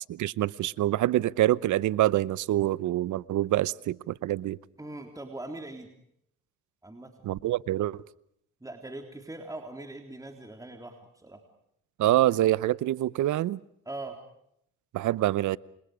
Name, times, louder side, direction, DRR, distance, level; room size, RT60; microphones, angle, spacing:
voice 1, 0.2-4.6 7.2-8.0 12.0-13.6 14.9-15.6, right 14 dB, 75° right, 20 dB, 0.9 m, -26 dB
voice 2, 4.8-5.9 6.8-7.1 8.6-11.4 13.9-14.2, right 2 dB, 10° right, 4 dB, 3.6 m, -41 dB
29.5 x 27.0 x 5.0 m, 0.73 s
cardioid pair, 90°, 30 cm